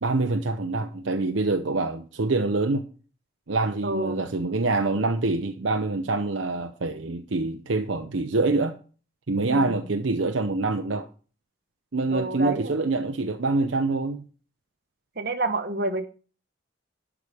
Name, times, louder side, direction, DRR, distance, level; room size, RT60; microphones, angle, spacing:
voice 1, 0.0-2.9 3.5-8.7 9.3-11.1 11.9-14.2, right 3 dB, 70° right, 0.7 m, -25 dB
voice 2, 3.8-4.2 9.5-9.8 12.1-12.7 15.2-16.1, right 2 dB, 50° right, 1.2 m, -28 dB
12.0 x 5.0 x 6.9 m
head